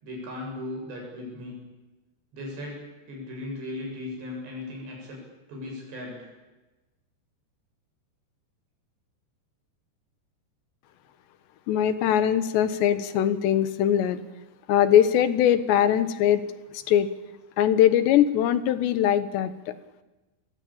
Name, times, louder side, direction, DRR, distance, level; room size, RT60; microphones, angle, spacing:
voice 1, 0.0-1.5 2.3-5.2 5.5-6.3, left 2 dB, 85° right, -1 dB, 9.9 m, -37 dB
voice 2, 11.7-14.2 14.7-16.4 16.7-17.1 17.6-19.7, left 10 dB, 90° left, 12 dB, 3.6 m, -21 dB
28.5 x 21.5 x 8.8 m, 1.1 s
omnidirectional pair, 4.9 m